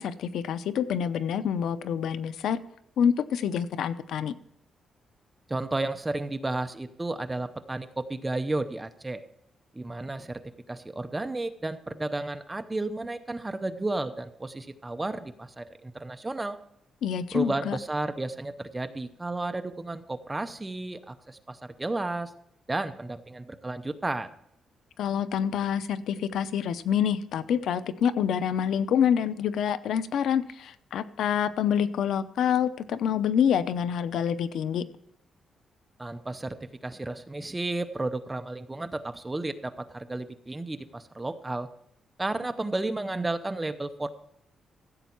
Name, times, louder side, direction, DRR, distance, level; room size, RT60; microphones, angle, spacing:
voice 1, 0.0-2.6 3.0-4.3 17.0-17.8 25.0-34.8, left 8 dB, 80° left, 13 dB, 0.6 m, -27 dB
voice 2, 5.5-9.2 9.7-10.4 10.7-16.6 17.3-22.3 22.7-24.3 36.0-41.7 42.2-44.1, right 2 dB, 15° right, 9 dB, 0.7 m, -32 dB
15.0 x 8.2 x 4.5 m, 0.74 s
cardioid pair, 135°, 0 cm